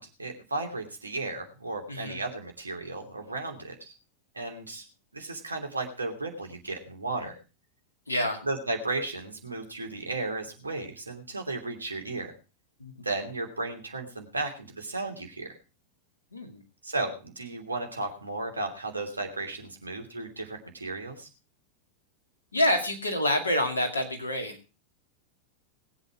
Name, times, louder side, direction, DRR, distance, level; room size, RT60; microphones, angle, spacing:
voice 1, 0.0-3.9 4.3-4.9 5.1-7.4 8.4-12.3 13.0-15.6 16.8-21.3, right 2 dB, 80° right, 4 dB, 2.9 m, -34 dB
voice 2, 1.9-2.2 8.1-8.4 12.8-13.1 16.3-16.6 22.5-24.6, left 1 dB, 80° left, 4 dB, 2.3 m, -27 dB
20.0 x 8.2 x 4.7 m, 0.33 s
figure-of-eight pair, 90°, 0 cm